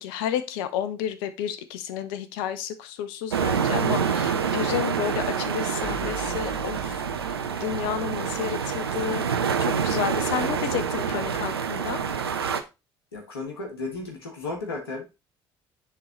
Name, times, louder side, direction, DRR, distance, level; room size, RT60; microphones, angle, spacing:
voice 1, 0.0-7.3 7.6-12.0, left 10 dB, 70° left, 11 dB, 0.8 m, -31 dB
sound 1, 3.3-12.6, right 6 dB, 90° right, 0.5 m, -27 dB
sound 2, 5.8-9.9, right 2 dB, 45° right, 1.8 m, -44 dB
voice 2, 13.1-15.0, left 3 dB, 85° left, 2 dB, 1.8 m, -34 dB
9.7 x 3.8 x 3.1 m, 0.27 s
figure-of-eight pair, 55°, 13 cm